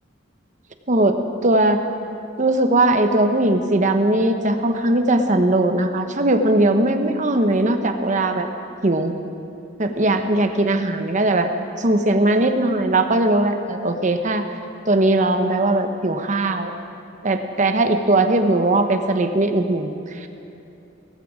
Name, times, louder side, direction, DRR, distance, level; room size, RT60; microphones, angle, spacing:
voice 1, 0.9-1.8 2.4-8.5 8.8-9.1 9.8-11.5 11.8-14.4 14.9-16.7 17.2-20.3, right 2 dB, 40° right, 7 dB, 1.0 m, -19 dB
18.0 x 16.0 x 5.0 m, 2.8 s
head